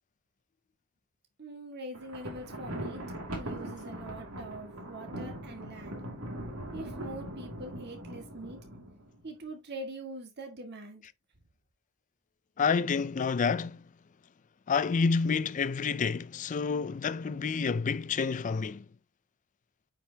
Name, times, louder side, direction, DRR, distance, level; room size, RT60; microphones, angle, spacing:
voice 1, 1.4-3.0 3.3-6.1 6.7-8.6 9.2-11.0, right 1 dB, 50° right, 1.7 m, -43 dB
Thunder, 1.9-9.2, right 1 dB, 70° right, 2.4 m, -41 dB
voice 2, 12.6-13.8 14.7-18.8, left 5 dB, 35° left, 0.4 m, -29 dB
9.1 x 5.2 x 2.8 m
head